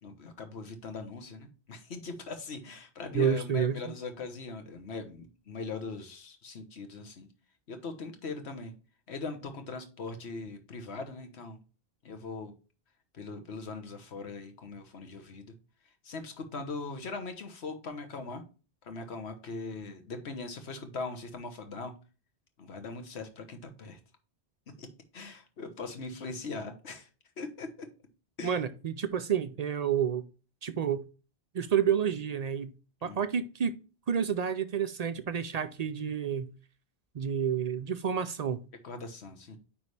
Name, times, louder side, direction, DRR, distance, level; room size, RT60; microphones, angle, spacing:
voice 1, 0.0-7.3 7.7-8.7 9.1-11.6 12.0-12.5 13.1-15.5 16.0-18.4 18.8-21.9 22.6-24.0 24.8-24.9 25.1-27.1 27.4-27.9 28.4-28.6 33.0-33.2 38.8-39.6, left 3 dB, 85° left, 1.4 m, -40 dB
voice 2, 3.1-3.9 28.4-30.3 30.6-31.0 31.5-32.7 33.0-33.7 34.1-36.6 37.1-38.6, right 8 dB, 55° right, 0.4 m, -29 dB
9.4 x 3.5 x 3.2 m
omnidirectional pair, 1.1 m